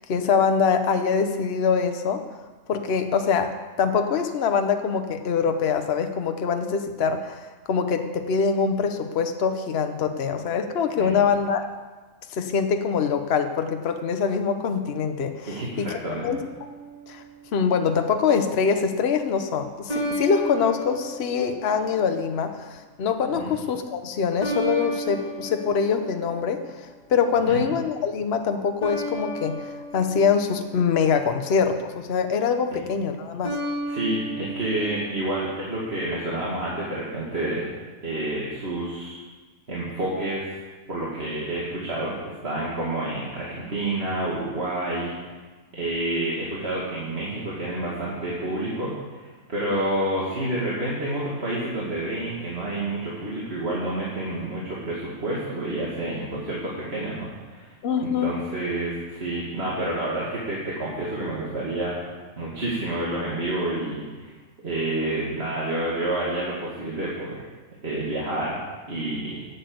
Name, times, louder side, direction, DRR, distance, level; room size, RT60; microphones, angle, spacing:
voice 1, 0.0-2.2 2.7-3.5 3.8-11.7 12.3-16.4 17.1-17.2 17.5-26.6 27.1-29.7 29.9-33.6 57.8-58.4, left 6 dB, 55° left, 6 dB, 1.0 m, -24 dB
voice 2, 15.4-16.3 23.3-23.5 27.4-27.6 32.7-32.8 33.9-37.7 38.0-39.2 39.7-40.5 40.9-45.1 45.7-57.7 58.0-62.0 62.4-64.3 64.6-67.4 67.8-68.6 68.9-69.5, right 1 dB, 50° right, -6 dB, 2.3 m, -29 dB
sound 1, 16.2-17.6 19.9-22.4 24.4-27.0 28.8-31.3 33.4-35.7, equal, 30° right, 2.7 m, -34 dB
11.0 x 8.1 x 7.8 m, 1.3 s
omnidirectional pair, 1.4 m